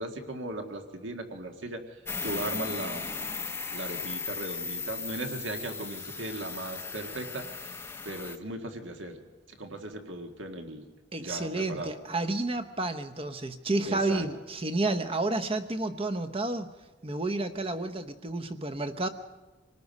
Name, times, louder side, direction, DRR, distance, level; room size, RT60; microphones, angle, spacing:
voice 1, 0.0-1.8 2.2-3.1 3.7-7.4 8.0-9.2 9.6-10.9 11.2-11.9 13.9-14.2, right 1 dB, 65° right, 5 dB, 1.8 m, -37 dB
sound 1, 2.0-8.4, left 4 dB, 10° left, 0.7 m, -36 dB
voice 2, 11.1-16.7 17.0-19.1, right 2 dB, 25° right, 11 dB, 0.9 m, -30 dB
27.0 x 18.5 x 5.3 m, 1.2 s
head